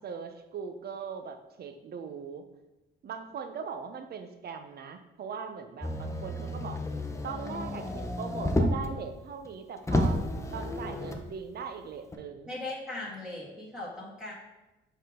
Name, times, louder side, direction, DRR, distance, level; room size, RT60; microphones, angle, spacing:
voice 1, 0.0-2.4 3.0-6.8 7.2-10.2 10.5-12.5, right 6 dB, 55° right, 7 dB, 0.7 m, -40 dB
Motor vehicle (road), 5.8-9.0 9.5-9.6 9.8-11.3 12.1-12.2, left 1 dB, 15° left, 0.7 m, -30 dB
voice 2, 12.5-14.3, left 2 dB, 5° right, -8 dB, 1.9 m, -38 dB
5.5 x 3.7 x 4.9 m, 1.0 s
cardioid pair, 90°, 20 cm